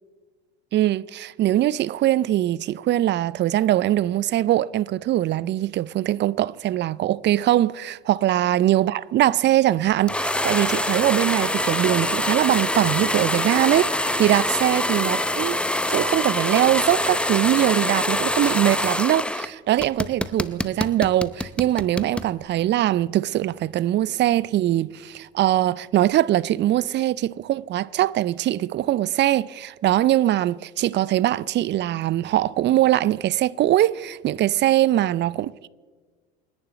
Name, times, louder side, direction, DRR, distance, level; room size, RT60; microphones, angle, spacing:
voice 1, 0.7-15.6 15.9-35.3, right 13 dB, 35° right, 0.5 m, -22 dB
sound 1, 10.1-19.5 19.8-22.3, left 1 dB, 5° left, 0.7 m, -25 dB
29.0 x 10.5 x 4.1 m
hypercardioid pair, 75°, 32 cm